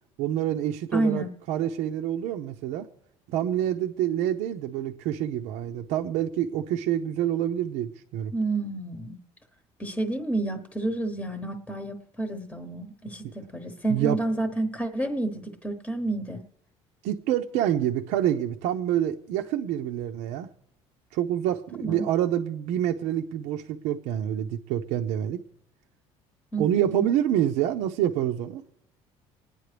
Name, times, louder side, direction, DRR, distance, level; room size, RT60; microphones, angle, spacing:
voice 1, 0.2-2.9 3.3-8.3 13.9-14.2 17.0-20.5 21.1-25.4 26.6-28.6, right 11 dB, 85° right, 4 dB, 0.7 m, -27 dB
voice 2, 0.9-1.3 8.3-9.2 9.8-16.4 21.8-22.1 26.5-27.1, right 2 dB, 10° left, 7 dB, 1.0 m, -29 dB
27.5 x 9.9 x 3.3 m, 0.80 s
cardioid pair, 110°, 12 cm